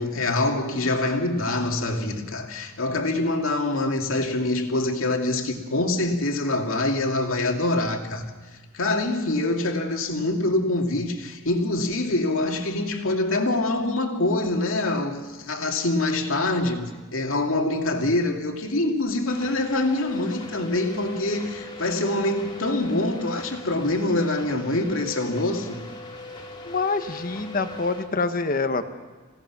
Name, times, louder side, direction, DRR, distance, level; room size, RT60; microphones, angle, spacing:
voice 1, 0.0-8.3 8.5-25.9, left 2 dB, 80° left, 2.4 m, -25 dB
sound 1, 19.3-28.1, left 2 dB, 25° left, 2.3 m, -40 dB
voice 2, 26.6-28.9, left 3 dB, 45° left, 1.3 m, -26 dB
27.0 x 17.5 x 6.0 m
head